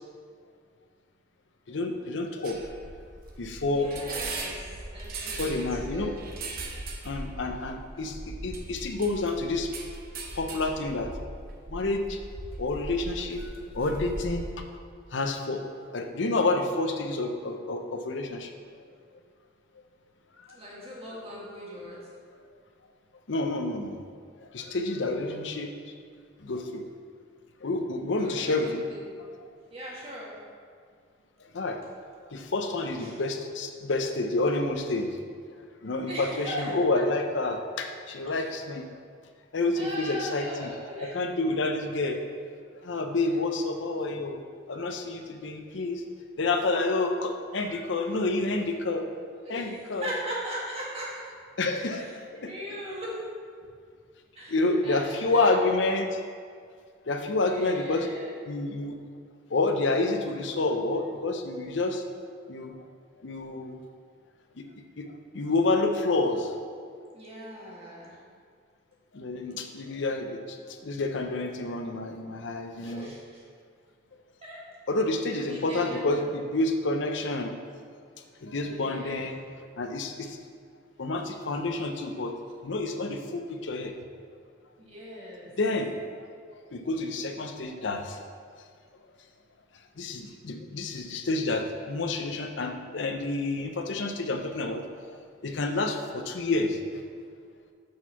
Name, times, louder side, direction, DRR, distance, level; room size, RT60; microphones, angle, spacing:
voice 1, 1.7-2.6 3.4-3.9 5.4-6.1 7.0-8.2 8.4-9.7 10.3-11.1 11.7-12.2 12.6-14.5 15.1-15.6 15.9-18.5 21.1-21.2 23.3-24.0 24.5-25.7 26.4-26.8 27.6-28.8 31.5-31.8 32.3-35.1 35.8-38.9 39.5-40.7 41.0-42.2 42.8-44.4 44.7-46.0 46.4-49.1 49.5-50.1 51.6-52.0 52.4-52.5 54.5-56.2 57.1-58.1 58.5-59.0 59.5-62.0 62.5-62.7 63.2-63.8 64.6-64.7 65.0-65.1 65.3-66.5 69.1-70.6 70.8-73.1 74.9-77.5 78.4-79.4 79.8-80.4 81.0-82.3 82.6-83.9 85.6-85.9 86.7-88.2 90.0-94.8 95.4-96.8, left 2 dB, 65° left, 5 dB, 0.6 m, -29 dB
sound 1, 2.4-14.5, right 2 dB, 50° right, 0.7 m, -39 dB
voice 2, 3.6-6.1 20.5-22.0 25.0-25.5 28.2-29.1 29.7-30.3 33.0-33.2 36.1-37.0 38.3-38.5 39.8-41.2 49.4-51.1 51.9-53.2 54.4-55.0 55.3-55.6 57.4-58.3 67.1-68.2 72.8-73.4 74.4-74.6 75.3-76.3 78.6-79.3 84.8-85.5, equal, 30° right, -6 dB, 1.8 m, -39 dB
6.5 x 4.6 x 5.7 m, 2.1 s
head